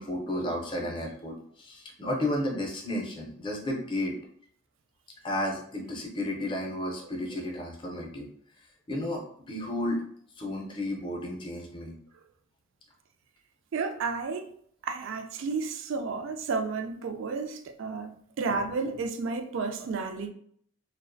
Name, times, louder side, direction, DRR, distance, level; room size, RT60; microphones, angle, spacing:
voice 1, 0.0-4.1 5.2-8.3 8.9-10.0 10.4-11.9, left 1 dB, 25° left, 0.5 m, -32 dB
voice 2, 13.7-14.5 14.8-20.3, right 4 dB, 60° right, 0.3 m, -32 dB
2.4 x 2.0 x 2.5 m
head